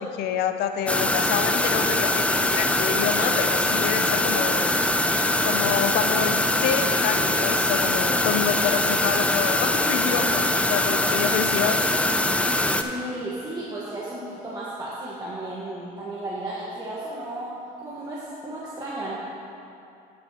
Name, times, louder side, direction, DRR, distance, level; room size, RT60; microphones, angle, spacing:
voice 1, 0.0-4.8 5.4-11.8, left 8 dB, 80° left, 8 dB, 0.6 m, -28 dB
sound 1, 0.9-12.8, left 1 dB, 5° left, 0.4 m, -22 dB
voice 2, 12.8-17.5 17.8-19.1, right 1 dB, 20° right, -8 dB, 1.4 m, -34 dB
12.0 x 7.6 x 3.0 m, 2.7 s
cardioid pair, 110°, 17 cm